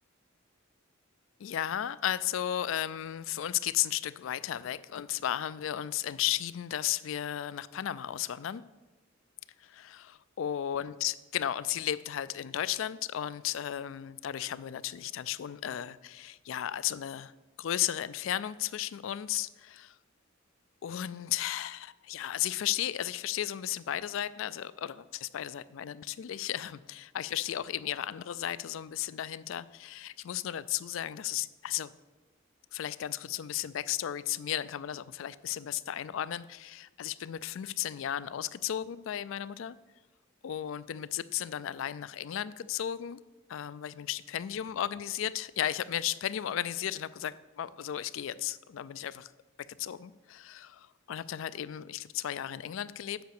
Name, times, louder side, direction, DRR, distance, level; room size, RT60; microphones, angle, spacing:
voice 1, 1.4-8.6 9.6-17.3 17.6-20.0 20.8-31.9 32.7-39.8 40.4-43.2 43.5-49.3 49.8-53.2, left 11 dB, 65° left, 17 dB, 0.3 m, -34 dB
8.1 x 5.1 x 6.6 m, 1.1 s
head